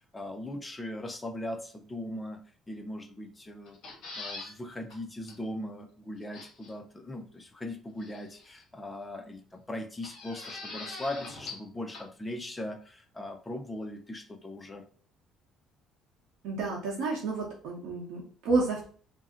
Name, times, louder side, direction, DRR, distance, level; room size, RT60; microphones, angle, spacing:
voice 1, 0.0-2.4 2.7-3.8 4.2-14.9, left 1 dB, 10° left, 6 dB, 0.4 m, -39 dB
sound 1, 3.7-4.5 4.9-5.0 5.3-5.4 6.3-6.7 8.0-8.6 10.0-11.7 11.9-12.0, left 3 dB, 60° left, 0.9 m, -42 dB
voice 2, 16.4-18.8, right 3 dB, 80° right, -4 dB, 0.8 m, -30 dB
2.6 x 2.0 x 3.6 m, 0.43 s
cardioid pair, 145°, 0 cm